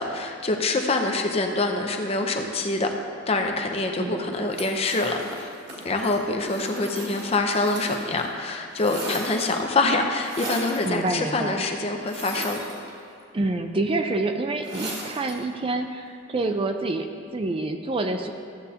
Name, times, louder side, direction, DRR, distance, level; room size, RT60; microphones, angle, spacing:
voice 1, 0.0-2.9 3.3-5.5 5.8-12.6, left 2 dB, 30° left, 3 dB, 0.6 m, -25 dB
voice 2, 4.0-4.5 10.8-11.6 13.3-18.3, right 2 dB, 25° right, 6 dB, 0.4 m, -27 dB
sound 1, 4.5-8.3 8.5-9.7 10.2-10.9 12.0-13.2 14.6-15.4, right 1 dB, 60° right, 2.3 m, -37 dB
14.5 x 7.8 x 2.8 m, 2.3 s
head